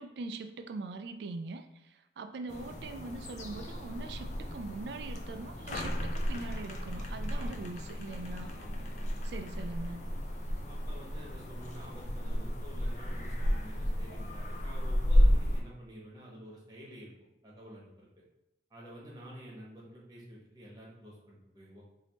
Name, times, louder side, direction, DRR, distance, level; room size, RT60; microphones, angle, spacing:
voice 1, 0.0-8.5 9.2-10.1, right 3 dB, 75° right, 8 dB, 0.3 m, -42 dB
sound 1, 2.5-15.6, equal, 40° left, 0.5 m, -32 dB
voice 2, 7.3-7.7 8.5-8.9 9.2-9.3 10.7-17.1 17.4-18.1 18.7-21.8, equal, 20° right, -5 dB, 1.1 m, -49 dB
3.4 x 2.7 x 4.0 m, 0.95 s
head